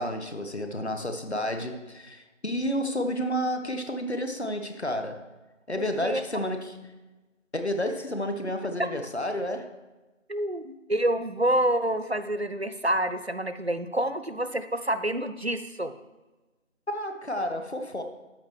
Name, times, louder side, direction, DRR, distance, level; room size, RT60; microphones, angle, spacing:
voice 1, 0.0-5.3 5.7-6.8 7.5-9.7 16.9-18.0, equal, 55° left, 6 dB, 1.0 m, -30 dB
voice 2, 5.8-6.2 10.3-15.9, right 1 dB, 55° right, 10 dB, 0.4 m, -28 dB
13.5 x 5.3 x 3.2 m, 1.1 s
figure-of-eight pair, 175°, 39 cm